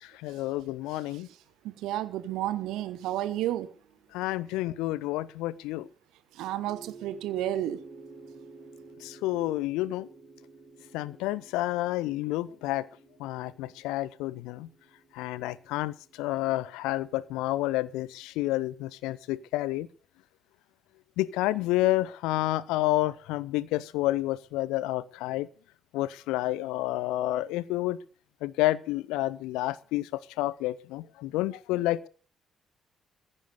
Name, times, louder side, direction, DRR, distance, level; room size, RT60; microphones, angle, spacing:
voice 1, 0.2-1.3 4.1-5.9 9.0-10.1 10.9-12.9 13.2-14.7 15.1-19.9 21.2-25.5 25.9-28.0 28.4-32.1, left 16 dB, 65° left, 0.6 m, -29 dB
voice 2, 1.6-3.7 6.3-7.8, right 13 dB, 65° right, 0.9 m, -31 dB
sound 1, 2.3-5.2 6.7-17.9, right 4 dB, 50° right, 5.0 m, -53 dB
15.5 x 9.8 x 6.9 m
figure-of-eight pair, 40°, 0 cm